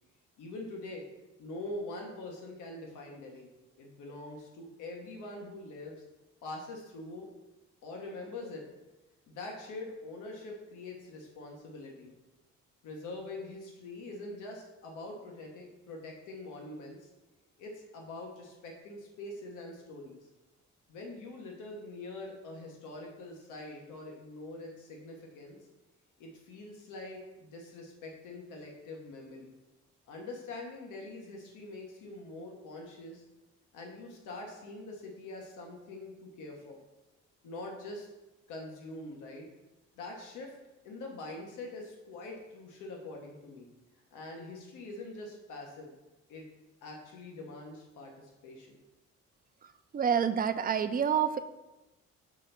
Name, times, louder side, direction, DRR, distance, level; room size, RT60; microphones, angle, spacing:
voice 1, 0.4-1.0 1.4-3.5 3.8-6.0 6.4-7.3 7.8-8.6 9.3-12.1 12.8-17.1 17.6-20.3 20.9-25.6 26.2-29.5 30.1-33.2 33.7-36.8 37.4-38.1 38.5-39.5 40.0-40.5 40.8-43.7 44.1-45.9 46.3-46.5 46.8-48.8, left 2 dB, 90° left, 0 dB, 1.2 m, -44 dB
voice 2, 49.9-51.4, right 8 dB, 30° right, 10 dB, 0.4 m, -27 dB
6.1 x 3.4 x 5.8 m, 1.0 s
cardioid pair, 90°, 30 cm